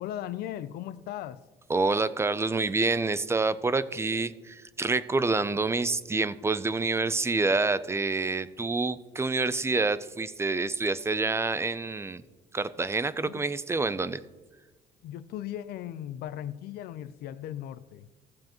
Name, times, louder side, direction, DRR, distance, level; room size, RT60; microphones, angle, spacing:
voice 1, 0.0-1.4 13.2-13.5 15.0-18.1, left 11 dB, 70° left, 15 dB, 0.5 m, -37 dB
voice 2, 1.7-12.2 12.5-14.2, right 3 dB, 15° right, 16 dB, 0.4 m, -27 dB
14.5 x 7.3 x 3.0 m, 1.2 s
cardioid pair, 110°, 17 cm